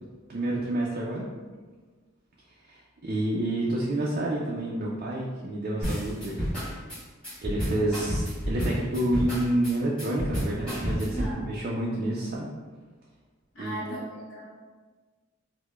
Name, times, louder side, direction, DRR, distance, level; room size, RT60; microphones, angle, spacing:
voice 1, 0.3-1.3 2.6-6.5 7.4-12.5 13.6-13.9, right 1 dB, 45° right, -4 dB, 0.4 m, -29 dB
sound 1, 5.8-11.3, equal, 5° left, 1.3 m, -30 dB
voice 2, 11.1-11.5 13.5-14.5, right 1 dB, 75° left, -6 dB, 1.3 m, -36 dB
4.7 x 2.1 x 2.3 m, 1.4 s
head